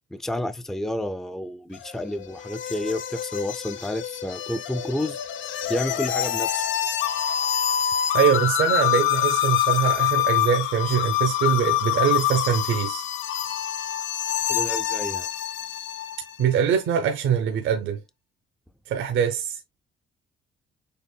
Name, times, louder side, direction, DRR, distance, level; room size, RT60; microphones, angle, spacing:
voice 1, 0.1-5.2 5.7-6.6 14.5-15.3, left 1 dB, ahead, 0.5 m, -30 dB
sound 1, 1.7-16.3, left 12 dB, 75° left, 0.6 m, -26 dB
voice 2, 8.1-13.1 16.4-18.0 18.9-19.6, right 8 dB, 85° right, 0.9 m, -23 dB
6.9 x 2.6 x 2.3 m
cardioid pair, 90°, 20 cm